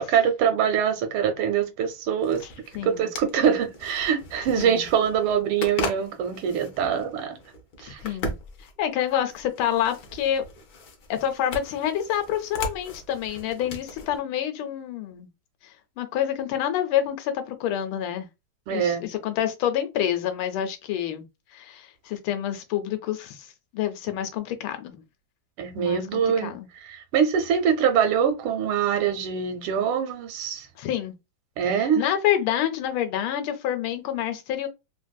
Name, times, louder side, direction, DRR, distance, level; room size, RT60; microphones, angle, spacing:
voice 1, 0.0-2.4 2.8-7.4 7.8-8.0 18.7-19.1 25.6-30.7 31.6-32.0, right 8 dB, 85° right, 1.4 m, -24 dB
sound 1, 2.2-14.2, left 2 dB, 65° left, 1.0 m, -38 dB
voice 2, 2.7-3.1 4.6-4.9 7.8-8.3 8.8-10.4 11.1-15.3 16.0-18.3 18.7-21.2 21.5-23.5 23.7-25.0 25.8-26.7 30.8-31.1 31.8-34.7, left 10 dB, 80° left, 1.4 m, -27 dB
3.3 x 2.6 x 2.2 m
omnidirectional pair, 2.3 m